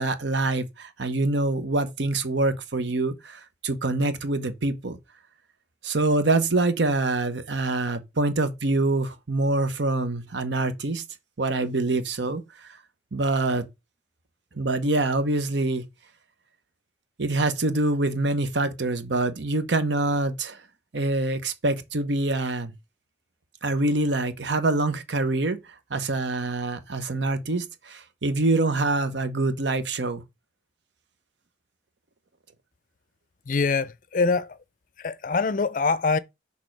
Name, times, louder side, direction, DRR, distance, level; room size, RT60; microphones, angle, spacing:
voice 1, 0.0-5.0 5.8-11.0 11.4-12.8 13.1-13.7 14.5-15.8 17.2-20.6 20.9-22.7 23.6-25.6 25.9-30.2, right 2 dB, 80° right, 1.0 m, -25 dB
voice 2, 33.5-34.6 35.0-36.2, left 4 dB, 45° left, 0.5 m, -24 dB
6.4 x 3.6 x 4.6 m
head